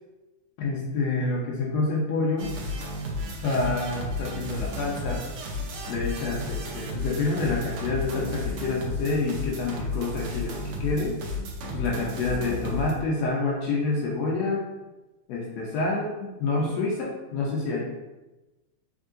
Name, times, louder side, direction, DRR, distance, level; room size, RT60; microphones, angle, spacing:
voice 1, 0.6-2.5 3.4-5.2 5.9-11.1 11.7-14.6 15.3-17.8, left 3 dB, 75° left, -3 dB, 1.7 m, -28 dB
sound 1, 2.4-12.9, left 2 dB, 85° right, 1.2 m, -33 dB
4.5 x 3.4 x 2.5 m, 1.1 s
omnidirectional pair, 3.3 m